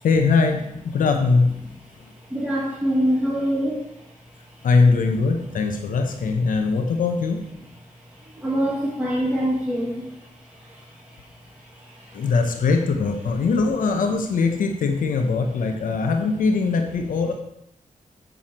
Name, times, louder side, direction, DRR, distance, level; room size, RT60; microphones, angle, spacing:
voice 1, 0.0-1.6 4.6-7.4 12.1-17.3, left 4 dB, 90° left, 5 dB, 0.9 m, -21 dB
voice 2, 2.3-3.8 8.2-10.3 10.6-11.3 11.7-12.3, equal, 10° right, -5 dB, 1.8 m, -25 dB
7.8 x 7.1 x 4.3 m, 0.79 s
cardioid pair, 85°, 13 cm